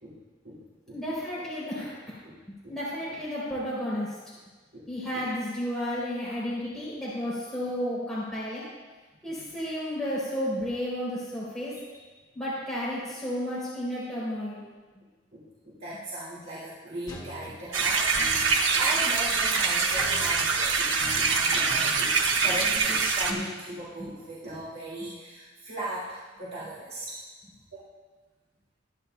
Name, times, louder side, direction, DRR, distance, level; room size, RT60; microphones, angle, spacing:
voice 1, 0.0-1.0 1.3-1.4 2.2-2.8 3.1-3.2 3.5-3.6 4.7-5.3 9.4-9.5 15.3-27.2 27.7-27.8, right 1 dB, 55° right, -8 dB, 2.1 m, -39 dB
voice 2, 0.9-2.1 2.7-4.2 4.9-8.7 9.2-11.7 12.3-14.7 24.0-24.1, equal, 5° left, -9 dB, 3.4 m, -32 dB
sound 1, 17.1-18.6 19.9-22.8, equal, 20° left, 2.1 m, -43 dB
sound 2, 17.7-23.3, right 4 dB, 75° right, 1.1 m, -24 dB
23.0 x 9.8 x 2.2 m, 1.3 s
head